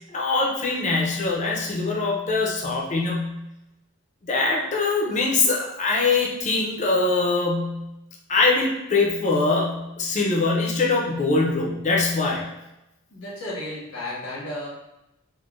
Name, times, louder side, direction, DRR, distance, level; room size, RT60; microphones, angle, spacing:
voice 1, 0.1-3.3 4.3-7.8 8.3-12.5, left 3 dB, 35° left, -2 dB, 0.5 m, -23 dB
voice 2, 13.1-14.7, left 1 dB, 90° left, -6 dB, 1.3 m, -33 dB
3.7 x 2.1 x 2.4 m, 0.89 s
head